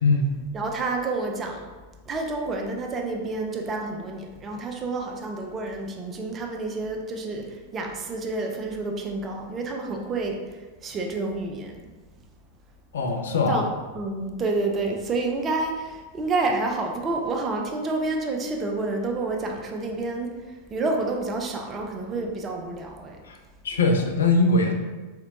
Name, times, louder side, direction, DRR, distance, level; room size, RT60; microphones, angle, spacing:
voice 1, 0.0-0.3 12.9-13.6 23.2-23.4 23.6-24.7, left 3 dB, 65° left, 3 dB, 0.5 m, -21 dB
voice 2, 0.5-1.6 2.1-11.8 13.5-13.7 13.9-23.2, right 3 dB, 25° right, 2 dB, 0.5 m, -29 dB
4.3 x 2.5 x 2.6 m, 1.2 s
figure-of-eight pair, 90°, 0 cm